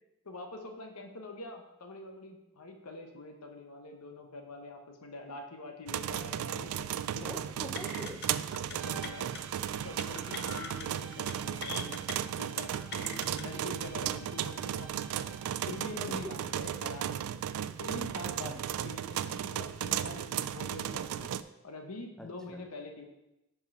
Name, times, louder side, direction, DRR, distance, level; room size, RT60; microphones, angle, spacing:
voice 1, 0.2-7.4 8.7-9.4 9.8-12.0 12.4-12.7 13.4-15.0 15.7-17.2 17.8-18.5 18.8-21.3 21.6-23.0, left 2 dB, 85° left, 4 dB, 1.0 m, -45 dB
sound 1, 5.9-21.4, right 10 dB, 75° right, 0.3 m, -35 dB
voice 2, 7.2-8.2 12.9-13.7 16.2-16.3 18.4-18.6 22.2-22.6, equal, 5° left, 1 dB, 0.6 m, -45 dB
sound 2, 7.8-8.3 8.5-8.8 9.0-9.4 10.0-10.9 11.1-11.3 11.6-12.1 12.6-13.4, left 7 dB, 45° left, 0.5 m, -42 dB
sound 3, 8.7-16.1, right 5 dB, 60° right, 0.8 m, -53 dB
5.4 x 4.9 x 5.3 m, 0.93 s
head